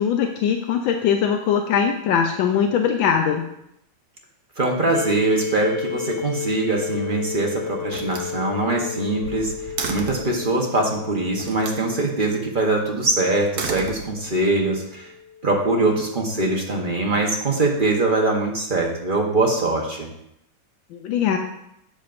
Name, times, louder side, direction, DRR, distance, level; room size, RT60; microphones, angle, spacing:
voice 1, 0.0-3.5 20.9-21.4, left 7 dB, 80° left, 4 dB, 1.4 m, -21 dB
voice 2, 4.6-9.5 9.9-15.1 15.4-20.1, right 2 dB, 35° right, -1 dB, 1.0 m, -22 dB
sound 1, 4.9-16.6, left 7 dB, 55° left, 0.7 m, -34 dB
Slam, 6.8-7.4 7.9-10.4 11.4-11.8 13.3-14.5, right 5 dB, 65° right, 1.3 m, -33 dB
10.5 x 7.2 x 2.6 m, 0.78 s
omnidirectional pair, 2.1 m